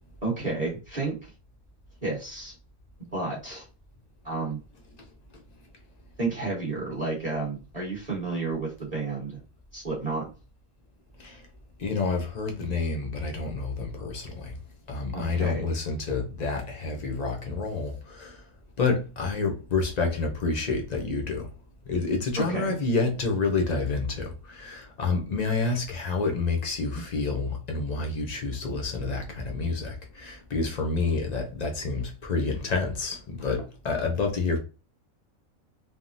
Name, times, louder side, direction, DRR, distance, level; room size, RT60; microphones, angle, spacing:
voice 1, 0.2-1.3 2.0-2.5 3.1-3.7 4.2-4.6 6.2-9.4 9.7-10.3 15.1-15.6 22.4-22.7 26.9-27.0, right 3 dB, 30° right, 1.0 m, -31 dB
voice 2, 11.8-14.5 14.9-18.4 18.8-21.5 21.9-34.6, left 4 dB, 55° left, 0.4 m, -28 dB
3.4 x 2.1 x 2.5 m
omnidirectional pair, 1.5 m